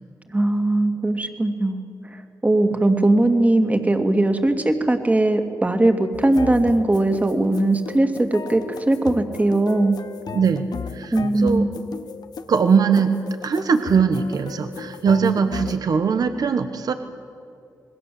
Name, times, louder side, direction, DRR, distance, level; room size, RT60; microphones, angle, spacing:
voice 1, 0.3-1.9 2.4-10.0 11.1-11.8, right 2 dB, 20° right, 6 dB, 2.6 m, -19 dB
sound 1, 6.1-15.8, left 6 dB, 75° left, 1.1 m, -36 dB
voice 2, 10.3-10.7 10.9-11.7 12.5-13.2 13.4-16.9, right 6 dB, 70° right, 8 dB, 1.4 m, -20 dB
27.0 x 20.5 x 7.9 m, 2.3 s
cardioid pair, 75°, 7 cm